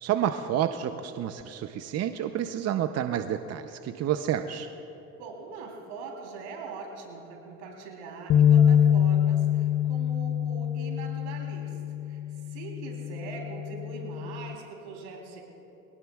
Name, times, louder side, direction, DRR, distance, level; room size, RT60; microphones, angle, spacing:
voice 1, 0.0-4.7, right 10 dB, 50° right, 8 dB, 0.7 m, -29 dB
voice 2, 5.2-11.8 12.1-12.2 12.5-15.4, right 4 dB, 85° right, -1 dB, 3.6 m, -42 dB
sound 1, 8.3-14.5, left 9 dB, 45° left, 0.8 m, -25 dB
23.5 x 18.5 x 2.4 m, 3.0 s
supercardioid pair, 85°, 33 cm